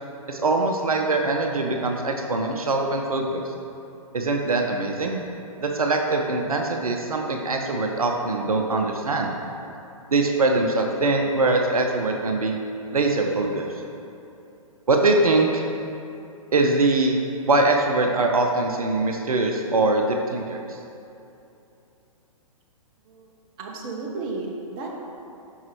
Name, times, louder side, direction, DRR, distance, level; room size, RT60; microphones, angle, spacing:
voice 1, 0.3-3.4 4.1-5.2 5.6-9.3 10.1-12.6 12.9-13.7 14.9-15.6 16.5-20.8, right 2 dB, 80° right, 2 dB, 0.6 m, -22 dB
voice 2, 23.6-24.9, right 3 dB, 25° right, -1 dB, 0.8 m, -33 dB
5.5 x 5.4 x 3.2 m, 2.8 s
figure-of-eight pair, 120°, 18 cm